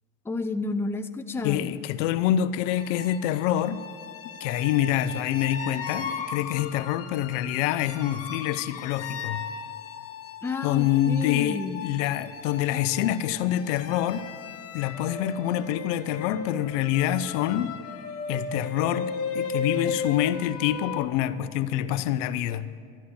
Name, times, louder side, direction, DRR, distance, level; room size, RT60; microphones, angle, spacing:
voice 1, 0.2-1.7 10.4-11.8, left 3 dB, 5° left, 0.5 m, -31 dB
voice 2, 1.4-3.8 4.4-9.4 10.6-14.3 14.7-17.7 18.3-22.7, left 12 dB, 70° left, 0.7 m, -26 dB
sound 1, 2.6-21.0, left 5 dB, 40° left, 1.5 m, -36 dB
13.0 x 9.4 x 7.1 m
supercardioid pair, 100°, 38 cm